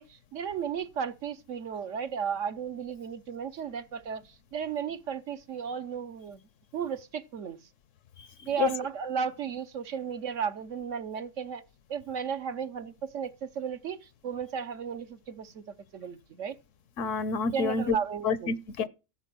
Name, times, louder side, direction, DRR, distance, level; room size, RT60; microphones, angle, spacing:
voice 1, 0.0-4.2 4.5-6.4 6.7-7.6 8.5-11.6 11.9-15.6 15.9-16.6 17.5-18.5, right 7 dB, 65° right, 1.2 m, -34 dB
voice 2, 17.0-18.0 18.2-18.9, left 5 dB, 65° left, 1.1 m, -28 dB
14.5 x 7.9 x 6.1 m
omnidirectional pair, 1.4 m